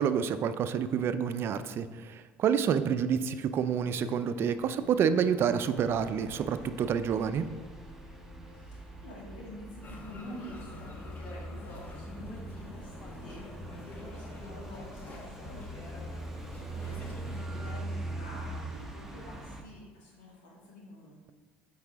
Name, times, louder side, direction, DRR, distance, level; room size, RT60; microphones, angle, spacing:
voice 1, 0.0-7.5, right 7 dB, 50° right, 11 dB, 0.4 m, -28 dB
sound 1, 3.6-12.8 13.0-13.2, equal, 15° left, 2.1 m, -53 dB
sound 2, 5.8-19.6, right 2 dB, 5° right, 1.0 m, -42 dB
voice 2, 8.5-21.3, left 1 dB, 85° left, -4 dB, 2.2 m, -48 dB
sound 3, 9.8-17.4, left 2 dB, 35° left, 1.1 m, -46 dB
8.1 x 4.8 x 3.5 m, 1.4 s
supercardioid pair, 80°, 5 cm